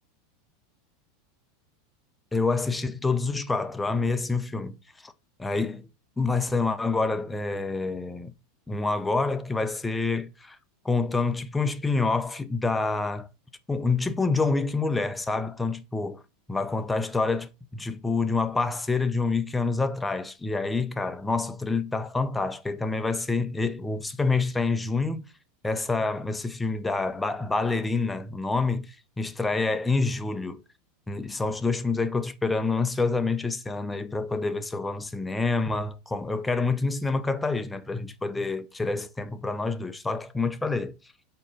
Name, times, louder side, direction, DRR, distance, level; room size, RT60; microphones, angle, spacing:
voice 1, 2.3-5.1 5.4-5.9 6.2-8.3 8.7-10.6 10.8-13.3 13.7-16.2 16.5-25.3 25.6-30.6 31.1-40.9, left 3 dB, 10° left, 0.5 m, -27 dB
4.4 x 4.3 x 5.2 m
supercardioid pair, 135°, 0 cm